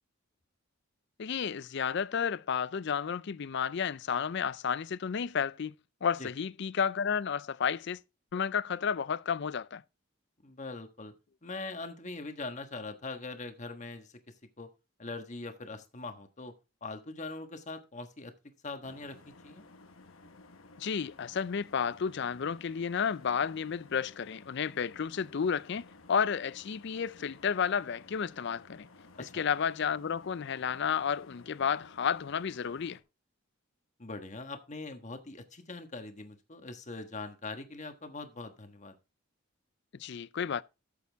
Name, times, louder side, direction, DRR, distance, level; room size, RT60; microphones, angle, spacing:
voice 1, 1.2-5.7 6.0-8.0 8.3-9.8 20.8-28.9 29.2-33.0 40.0-40.6, left 7 dB, 50° left, 0.4 m, -32 dB
voice 2, 10.4-11.1 11.4-14.1 14.6-14.7 15.0-16.5 16.8-18.3 18.6-19.2 19.4-19.6 29.1-29.4 34.0-39.0, left 3 dB, 35° left, 1.4 m, -42 dB
sound 1, 18.8-33.0, left 3 dB, 70° left, 1.1 m, -56 dB
13.5 x 7.0 x 3.5 m
head